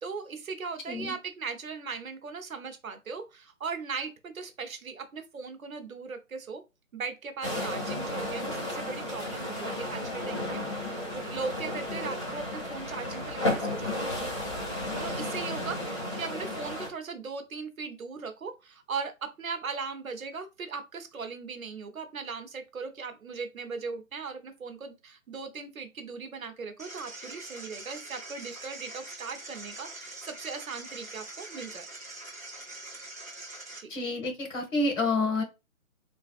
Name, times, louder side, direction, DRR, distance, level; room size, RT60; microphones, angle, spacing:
voice 1, 0.0-6.6 6.9-14.2 15.0-31.8 33.8-33.9, right 5 dB, 75° right, 0.8 m, -38 dB
sound 1, 7.4-16.9, left 1 dB, 20° left, 0.7 m, -33 dB
sound 2, 26.8-33.8, right 2 dB, 10° right, 0.5 m, -44 dB
voice 2, 33.9-35.4, left 2 dB, 60° left, 1.3 m, -28 dB
3.3 x 2.4 x 2.3 m
figure-of-eight pair, 145°, 42 cm